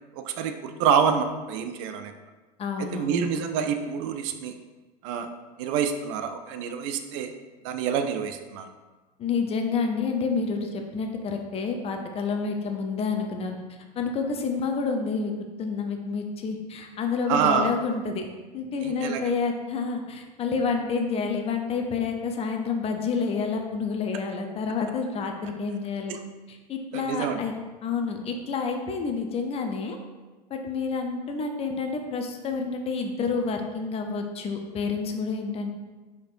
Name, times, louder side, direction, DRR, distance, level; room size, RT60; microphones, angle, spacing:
voice 1, 0.2-2.1 2.9-4.6 5.0-5.3 5.6-7.3 7.6-8.7 17.3-17.8 18.8-19.2 26.1-26.2 26.9-27.4, right 7 dB, 50° right, 7 dB, 0.4 m, -27 dB
voice 2, 2.6-3.3 9.2-13.6 14.0-15.3 15.6-18.3 18.5-26.1 26.5-30.0 30.5-35.7, left 4 dB, 30° left, 4 dB, 0.5 m, -29 dB
4.3 x 4.1 x 2.5 m, 1.2 s
figure-of-eight pair, 80°, 21 cm